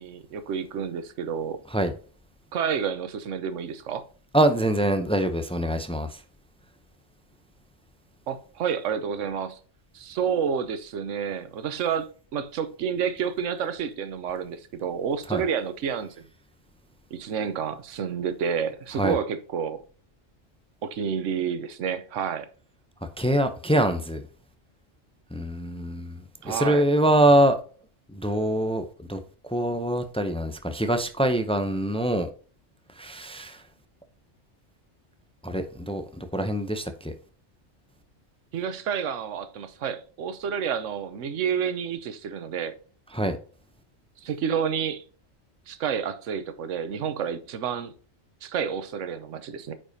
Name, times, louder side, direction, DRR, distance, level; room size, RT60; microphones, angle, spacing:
voice 1, 0.0-1.6 2.5-4.0 8.3-9.6 9.9-16.2 17.1-19.8 20.8-22.5 26.4-26.8 38.5-42.7 44.2-45.0 45.7-47.9 48.4-49.7, right 7 dB, 75° right, 1.1 m, -29 dB
voice 2, 4.3-6.2 15.3-15.4 18.9-19.2 23.2-24.2 25.3-27.6 28.1-32.3 33.0-33.6 35.4-37.1 43.1-43.4, right 1 dB, 10° left, 0.3 m, -24 dB
8.8 x 4.9 x 2.7 m
omnidirectional pair, 1.3 m